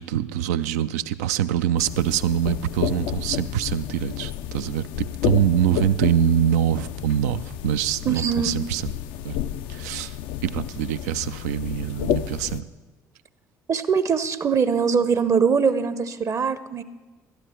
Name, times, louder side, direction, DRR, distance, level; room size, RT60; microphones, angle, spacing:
voice 1, 0.0-8.9 9.2-9.4 9.7-10.2 10.4-12.7, right 10 dB, 75° right, 13 dB, 0.4 m, -24 dB
sound 1, 1.8-12.6, left 11 dB, 65° left, 0.4 m, -31 dB
voice 2, 8.0-8.6 13.7-16.8, right 6 dB, 35° right, 13 dB, 0.7 m, -22 dB
12.5 x 11.5 x 4.5 m, 1.2 s
hypercardioid pair, 55°, 9 cm